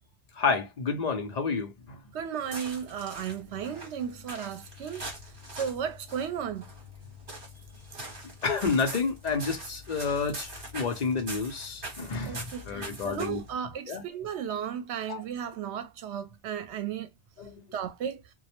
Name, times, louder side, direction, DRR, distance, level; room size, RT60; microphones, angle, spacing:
voice 1, 0.4-1.7 8.4-13.4 13.9-14.0 15.1-15.2 17.4-17.6, left 5 dB, 50° left, 0.6 m, -30 dB
voice 2, 2.1-5.0 5.5-6.6 12.3-17.1 17.7-18.2, right 8 dB, 80° right, 0.9 m, -34 dB
sound 1, 2.4-13.5, right 1 dB, 50° right, 1.1 m, -43 dB
2.3 x 2.0 x 2.8 m
omnidirectional pair, 1.1 m